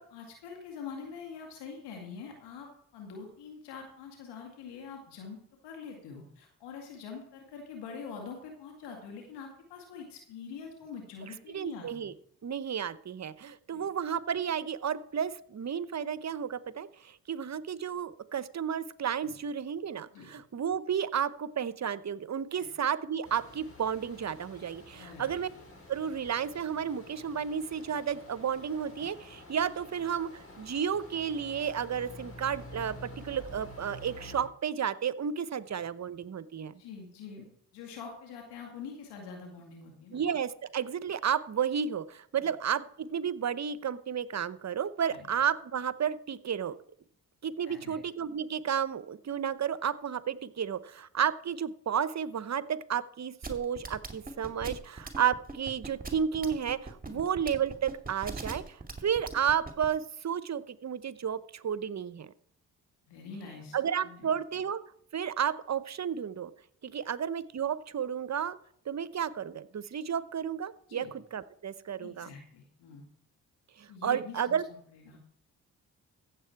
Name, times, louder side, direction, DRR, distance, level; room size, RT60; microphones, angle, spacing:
voice 1, 0.0-12.1 13.7-13.9 19.2-19.3 20.1-20.3 22.5-22.7 25.0-25.4 36.8-37.5 37.7-40.2 42.4-42.5 45.1-45.3 47.7-48.0 57.1-57.3 63.1-63.8 64.0-64.3 70.9-71.1 72.0-73.0 73.9-75.3, left 5 dB, 85° left, 2 dB, 2.3 m, -45 dB
voice 2, 11.5-12.1 12.4-25.5 25.9-36.7 40.1-46.8 47.4-62.3 63.7-64.8 65.1-66.5 66.8-68.6 68.9-72.3 73.8-74.6, right 8 dB, 45° right, 17 dB, 0.8 m, -32 dB
sound 1, 23.2-34.4, left 1 dB, 35° left, 4.7 m, -49 dB
sound 2, 53.4-59.9, right 3 dB, 20° right, 2.3 m, -40 dB
15.0 x 7.6 x 4.6 m, 0.65 s
hypercardioid pair, 45°, 40 cm